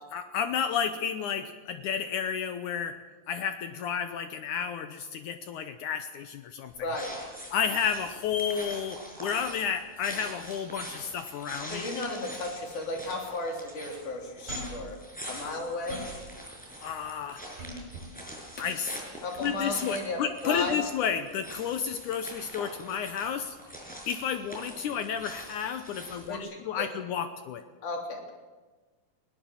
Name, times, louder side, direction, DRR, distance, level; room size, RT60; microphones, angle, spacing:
voice 1, 0.1-3.0 3.3-6.7 7.5-11.9 16.8-17.4 18.6-19.0 19.4-23.6 24.1-27.6, left 7 dB, 90° left, 8 dB, 1.7 m, -31 dB
sound 1, 6.7-26.4, equal, ahead, 5.6 m, -44 dB
voice 2, 6.8-7.1 11.7-15.0 15.2-16.0 19.2-20.8 26.3-26.9 27.8-28.2, left 2 dB, 50° left, 1 dB, 4.6 m, -34 dB
sound 2, 14.5-14.9 15.4-16.2 17.6-18.1 19.4-19.5, right 1 dB, 50° right, 7.9 m, -41 dB
20.5 x 18.5 x 7.4 m, 1.3 s
omnidirectional pair, 4.8 m